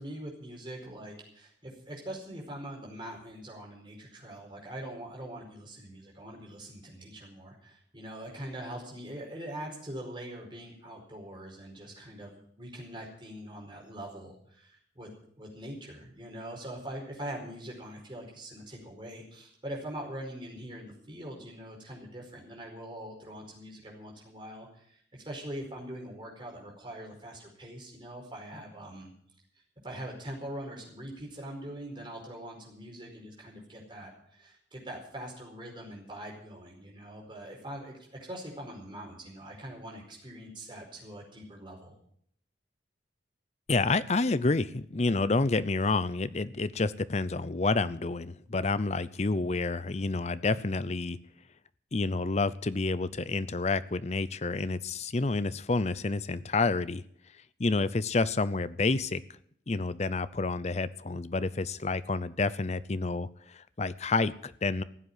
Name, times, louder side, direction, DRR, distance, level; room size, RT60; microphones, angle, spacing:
voice 1, 0.0-15.1 15.4-29.1 29.8-41.9, right 1 dB, 25° right, -1 dB, 4.8 m, -43 dB
voice 2, 43.7-51.2 51.9-57.0 57.6-59.2 59.7-64.8, left 3 dB, 40° left, 16 dB, 0.6 m, -29 dB
15.0 x 8.0 x 9.8 m, 0.67 s
head